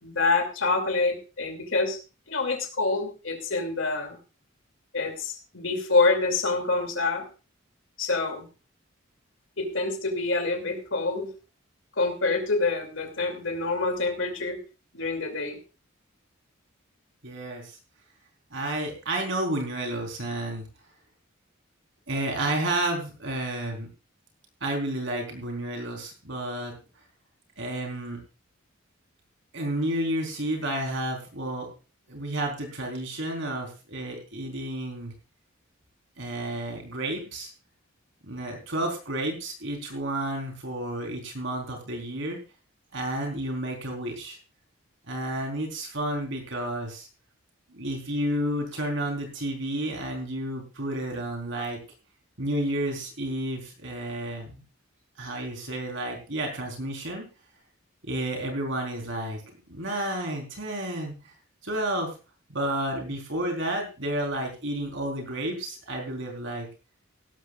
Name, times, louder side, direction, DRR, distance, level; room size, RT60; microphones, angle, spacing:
voice 1, 0.0-2.0 2.3-4.2 4.9-7.2 8.0-8.5 9.6-11.3 12.0-14.6 14.9-15.6, left 3 dB, 65° left, 4 dB, 2.8 m, -26 dB
voice 2, 17.2-17.8 18.5-20.6 22.1-23.9 24.6-26.7 27.6-28.2 29.5-31.7 32.1-35.1 36.2-37.5 38.2-42.4 42.9-44.4 45.1-47.1 47.7-51.8 52.4-54.6 55.2-57.3 58.0-59.4 59.7-61.3 61.6-62.2 62.5-66.7, right 1 dB, 60° right, 2 dB, 4.2 m, -31 dB
17.0 x 13.0 x 2.5 m, 0.32 s
head